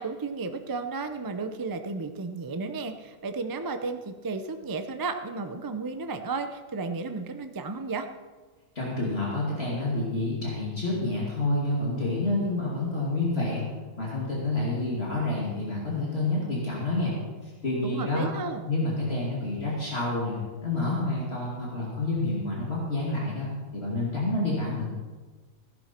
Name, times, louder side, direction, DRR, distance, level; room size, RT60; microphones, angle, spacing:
voice 1, 0.0-8.1 17.8-18.6, right 4 dB, 25° right, 7 dB, 0.4 m, -33 dB
voice 2, 8.7-18.3 18.7-24.9, left 2 dB, 50° left, -5 dB, 2.8 m, -29 dB
16.0 x 11.0 x 4.4 m, 1.3 s
omnidirectional pair, 1.4 m